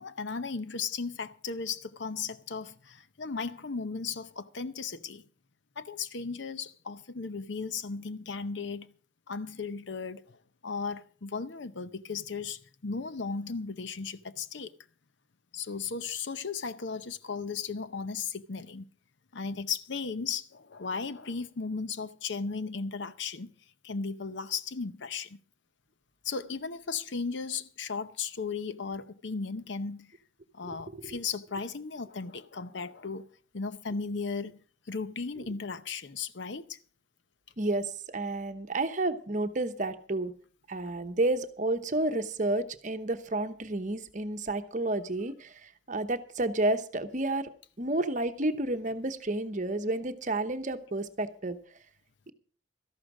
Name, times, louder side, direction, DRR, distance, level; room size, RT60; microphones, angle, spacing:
voice 1, 0.0-5.2 5.8-8.9 9.3-10.4 10.6-14.7 15.5-18.9 19.3-23.5 23.8-25.4 26.2-30.1 30.5-33.3 33.5-34.6 34.9-36.8, left 5 dB, 70° left, 0.7 m, -36 dB
voice 2, 37.6-40.3 40.7-47.5 47.8-51.6, right 2 dB, 40° right, 1.0 m, -31 dB
13.0 x 11.5 x 4.9 m
head